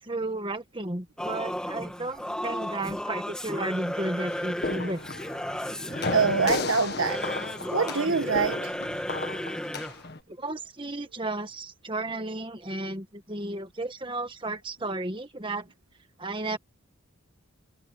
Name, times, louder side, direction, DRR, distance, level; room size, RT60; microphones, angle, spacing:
voice 1, 0.0-5.0 10.3-15.7 16.2-16.6, right 2 dB, 25° right, 1.6 m, -33 dB
Singing / Musical instrument, 1.2-10.0, equal, 5° left, 2.1 m, -34 dB
sound 1, 4.3-10.2, left 3 dB, 50° left, 1.8 m, -35 dB
voice 2, 6.1-7.2 7.7-8.7, right 5 dB, 70° right, 1.5 m, -25 dB
head